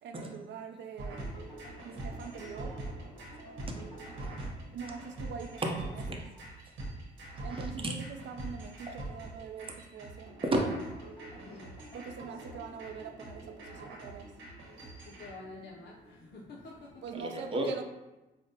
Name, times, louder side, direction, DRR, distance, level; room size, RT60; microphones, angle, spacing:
voice 1, 0.0-1.4 1.8-2.8 4.7-5.6 7.4-8.0 8.2-10.4 11.9-14.3 17.0-17.8, right 6 dB, 65° right, 6 dB, 0.4 m, -43 dB
sound 1, 1.0-15.3, right 2 dB, 90° right, 1.1 m, -44 dB
sound 2, 1.1-7.2 7.9-8.5 9.1-9.7 10.3-17.2, right 1 dB, 20° left, 1.0 m, -53 dB
voice 2, 3.7-4.5 5.6-6.2 7.5-8.0 10.4-10.7 17.1-17.8, right 1 dB, 25° right, 1 dB, 0.7 m, -34 dB
voice 3, 11.3-11.7 15.1-17.0, left 3 dB, 55° left, -3 dB, 0.5 m, -48 dB
5.1 x 2.1 x 2.7 m, 1.1 s
cardioid pair, 90°, 20 cm